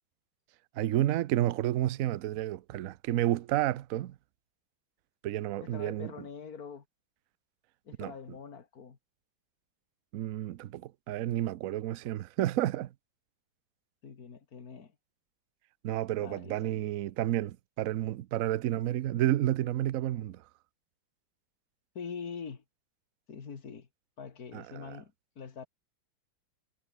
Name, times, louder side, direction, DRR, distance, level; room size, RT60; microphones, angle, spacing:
voice 1, 0.8-4.1 5.2-6.1 8.0-8.1 10.1-12.9 15.8-20.4 24.5-25.0, right 13 dB, 75° right, 0.7 m, -30 dB
voice 2, 5.6-6.8 7.8-9.0 14.0-15.0 16.2-16.9 21.9-22.6 23.3-23.9 24.2-25.7, left 6 dB, 45° left, 2.4 m, -44 dB
omnidirectional pair, 2.2 m